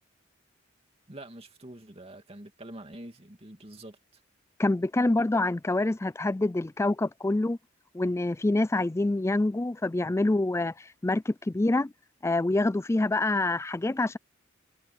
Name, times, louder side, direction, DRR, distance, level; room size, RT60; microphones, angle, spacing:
voice 1, 1.1-4.2, right 1 dB, 30° right, 2.5 m, -46 dB
voice 2, 4.6-7.6 7.9-10.7 11.0-11.9 12.2-14.2, left 2 dB, 15° left, 0.3 m, -26 dB
head